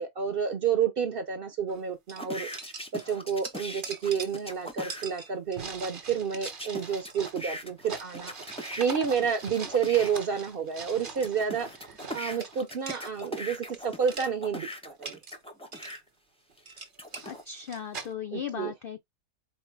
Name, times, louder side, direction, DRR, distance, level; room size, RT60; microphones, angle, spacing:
voice 1, 0.0-2.5 2.9-8.3 8.8-11.7 12.1-15.2 18.3-18.7, right 7 dB, 55° right, 0.6 m, -30 dB
sound 1, 1.7-1.8 2.1-13.8 14.0-14.3 14.7-15.4 15.7-16.0 16.5-18.1, right 5 dB, 40° right, 1.0 m, -42 dB
sound 2, 2.2-5.1 6.4-10.1 10.7-16.0 16.6-17.4, equal, 10° left, 0.3 m, -40 dB
voice 2, 17.2-19.0, left 8 dB, 80° left, 0.5 m, -37 dB
4.4 x 2.0 x 4.5 m
omnidirectional pair, 1.5 m